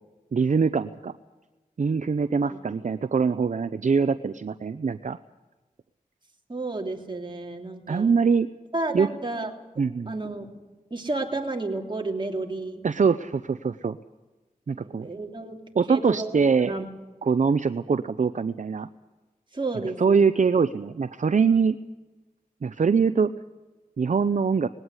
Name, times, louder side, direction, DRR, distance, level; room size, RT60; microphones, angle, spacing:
voice 1, 0.3-1.1 1.8-5.2 7.9-8.5 8.9-9.1 9.8-10.1 12.8-14.0 14.7-15.1 15.7-16.7 17.2-18.9 20.0-21.8 22.6-23.3 24.0-24.7, right 5 dB, 60° right, 12 dB, 0.6 m, -23 dB
voice 2, 6.5-8.2 8.7-9.5 10.1-10.5 10.9-12.8 14.8-15.6 15.9-16.9 19.5-20.5, right 2 dB, 35° right, 2 dB, 3.2 m, -32 dB
20.5 x 17.0 x 9.7 m, 1.2 s
wide cardioid pair, 70°, 14 cm